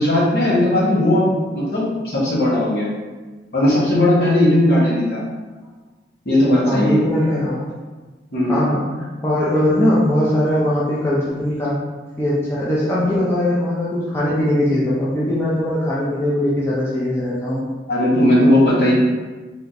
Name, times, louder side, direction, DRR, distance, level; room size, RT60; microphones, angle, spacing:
voice 1, 0.0-2.9 3.5-5.2 6.2-7.0 8.3-8.6 17.9-18.9, left 1 dB, 60° left, -7 dB, 1.3 m, -17 dB
voice 2, 6.6-7.7 8.5-8.9 9.2-11.7 12.2-17.6, left 1 dB, 15° left, -8 dB, 0.6 m, -20 dB
3.4 x 2.9 x 4.0 m, 1.3 s
head